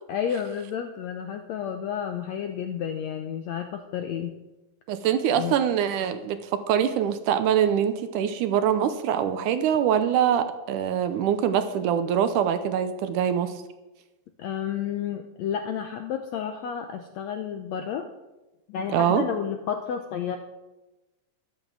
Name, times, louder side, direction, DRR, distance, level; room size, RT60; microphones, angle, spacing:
voice 1, 0.1-4.3 5.4-5.6 14.4-18.1 18.7-20.4, left 8 dB, 75° left, 6 dB, 1.6 m, -31 dB
voice 2, 4.9-13.5 18.9-19.2, right 9 dB, 75° right, 10 dB, 2.1 m, -24 dB
11.5 x 8.9 x 7.4 m, 1.1 s
omnidirectional pair, 3.9 m